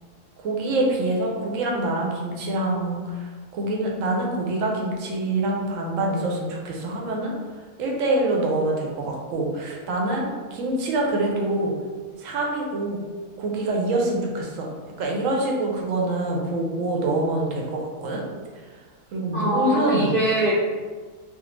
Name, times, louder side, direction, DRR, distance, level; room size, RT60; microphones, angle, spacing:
voice 1, 0.4-7.3 7.8-11.7 12.2-13.0 13.4-14.7 15.0-18.2 19.1-20.1, right 2 dB, 70° right, -1 dB, 0.9 m, -25 dB
voice 2, 19.3-20.6, right 1 dB, 50° right, -10 dB, 0.5 m, -23 dB
3.4 x 2.0 x 3.1 m, 1.5 s
omnidirectional pair, 1.6 m